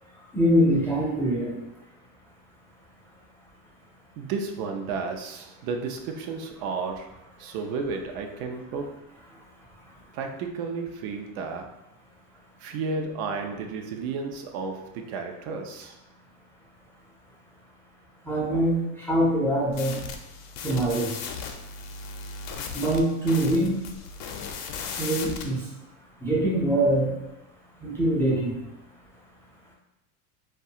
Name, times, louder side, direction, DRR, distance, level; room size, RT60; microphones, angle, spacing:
voice 1, 0.3-1.6 18.3-19.9 20.6-21.2 22.7-23.7 25.0-25.6 26.2-27.1 27.8-28.6, right 1 dB, 5° left, -5 dB, 0.4 m, -23 dB
voice 2, 4.2-7.1 7.4-8.9 10.1-11.7 12.6-16.0, right 4 dB, 70° right, 4 dB, 0.5 m, -32 dB
sound 1, 19.7-25.5, left 5 dB, 75° left, 0.5 m, -37 dB
2.3 x 2.3 x 2.7 m, 0.91 s
supercardioid pair, 100°, 47 cm